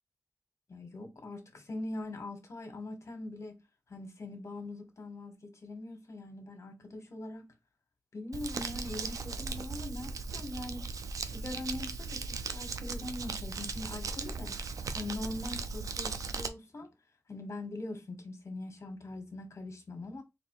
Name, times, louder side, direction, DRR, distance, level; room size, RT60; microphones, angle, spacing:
voice 1, 0.7-3.6 3.9-7.5 8.1-10.9 11.2-14.6 14.9-16.9 17.3-20.2, left 2 dB, 60° left, 1.2 m, -42 dB
Crumpling crinkling, 8.3-16.5, right 4 dB, 90° right, 0.4 m, -38 dB
4.2 x 2.8 x 2.9 m
wide cardioid pair, 90°, 6 cm